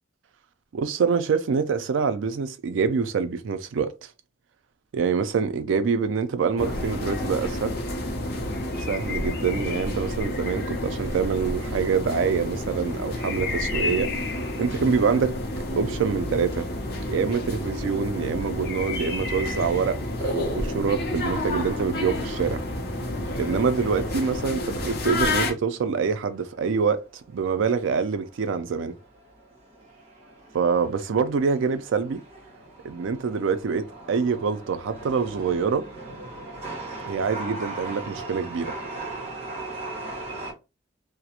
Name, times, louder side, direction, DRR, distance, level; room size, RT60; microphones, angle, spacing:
voice 1, 0.7-3.9 4.9-7.8 8.9-14.2 14.6-15.4 15.7-16.7 17.1-22.6 23.3-27.0 27.3-29.0 30.5-32.2 32.8-35.9 37.1-38.7, right 5 dB, 80° right, 0.4 m, -25 dB
sound 1, 6.6-25.5, left 1 dB, 50° left, 0.5 m, -29 dB
Chatter / Subway metro underground, 26.3-40.5, right 2 dB, 35° right, 0.9 m, -39 dB
2.4 x 2.0 x 2.8 m
head